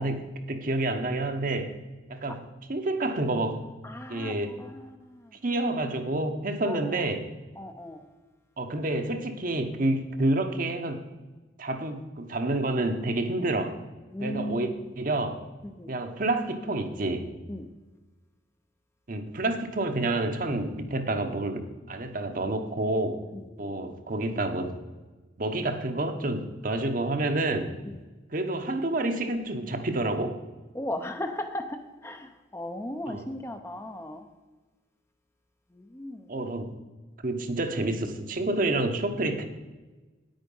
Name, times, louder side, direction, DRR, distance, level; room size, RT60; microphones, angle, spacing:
voice 1, 0.0-1.7 2.1-2.4 2.7-3.6 4.1-4.5 5.4-7.3 8.6-11.0 11.6-13.8 14.2-14.7 15.0-15.4 15.9-17.3 19.1-23.2 23.6-24.7 25.4-27.7 28.3-30.4 33.1-33.3 36.3-36.7 37.2-39.5, right 2 dB, 45° right, 6 dB, 1.0 m, -28 dB
voice 2, 3.8-5.3 6.7-7.0 7.6-8.0 14.1-14.9 15.8-15.9 17.5-17.7 23.3-23.7 27.8-28.0 30.7-34.3 35.7-36.3, left 1 dB, 15° left, 6 dB, 0.6 m, -37 dB
9.5 x 9.0 x 5.4 m, 1.2 s
head